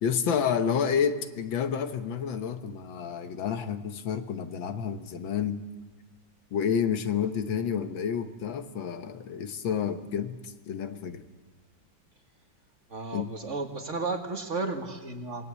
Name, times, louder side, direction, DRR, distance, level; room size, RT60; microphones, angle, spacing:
voice 1, 0.0-5.6 6.5-11.2 13.1-13.3, left 7 dB, 75° left, 9 dB, 1.9 m, -29 dB
voice 2, 12.9-15.4, right 3 dB, 40° right, 5 dB, 2.0 m, -33 dB
25.5 x 20.5 x 8.3 m, 1.3 s
omnidirectional pair, 2.1 m